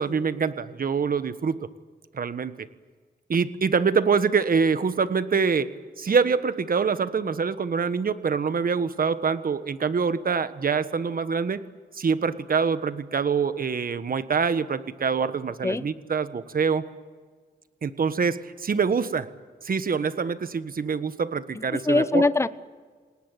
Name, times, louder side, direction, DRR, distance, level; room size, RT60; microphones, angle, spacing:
voice 1, 0.0-1.6 2.1-2.7 3.3-11.6 11.9-16.8 17.8-19.3 19.6-22.2, right 5 dB, 50° right, 12 dB, 1.4 m, -25 dB
voice 2, 21.5-22.5, left 2 dB, 15° left, 14 dB, 0.9 m, -22 dB
28.0 x 19.0 x 9.3 m, 1.5 s
cardioid pair, 85°, 18 cm